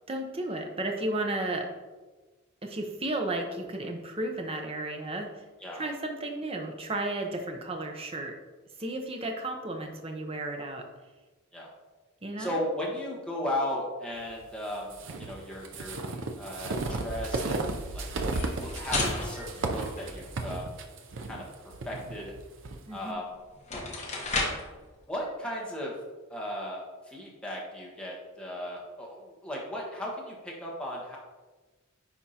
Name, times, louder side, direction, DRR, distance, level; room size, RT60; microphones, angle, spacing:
voice 1, 0.1-1.7 2.6-5.3 5.7-8.3 8.8-10.9 12.2-12.6 22.9-23.2, right 2 dB, 25° right, 3 dB, 0.7 m, -33 dB
voice 2, 12.4-14.9 15.2-16.0 16.4-18.1 18.3-20.7 21.3-21.4 21.8-22.3 22.9-23.3 25.1-25.9 26.3-31.2, left 1 dB, 5° left, -4 dB, 1.3 m, -36 dB
sound 1, 14.9-22.8, right 2 dB, 60° right, 0.6 m, -34 dB
sound 2, 18.2-20.6 23.0-23.1 23.6-24.8, left 3 dB, 30° left, 0.9 m, -33 dB
10.0 x 3.6 x 2.8 m, 1.3 s
head